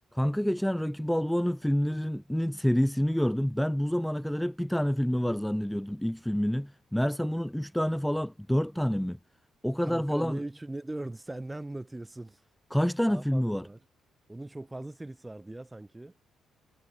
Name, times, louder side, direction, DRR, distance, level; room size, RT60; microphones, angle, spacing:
voice 1, 0.1-9.2 9.6-10.4 12.7-13.7, equal, 5° left, 0.6 m, -28 dB
voice 2, 9.8-12.4 13.1-13.8 14.3-16.1, right 2 dB, 15° right, 1.9 m, -40 dB
cardioid pair, 90°, 0 cm